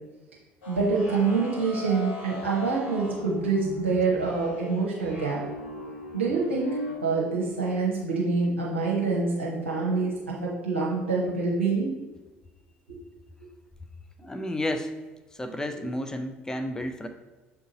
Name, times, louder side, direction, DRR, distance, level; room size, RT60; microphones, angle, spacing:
sound 1, 0.6-6.9, left 1 dB, 75° left, 1.7 m, -39 dB
voice 1, 0.7-5.4 6.1-11.9, right 4 dB, 80° right, -5 dB, 0.9 m, -26 dB
voice 2, 14.2-14.9 15.3-17.1, left 1 dB, 10° left, 6 dB, 0.6 m, -31 dB
6.7 x 3.9 x 3.8 m, 1.2 s
figure-of-eight pair, 60°, 6 cm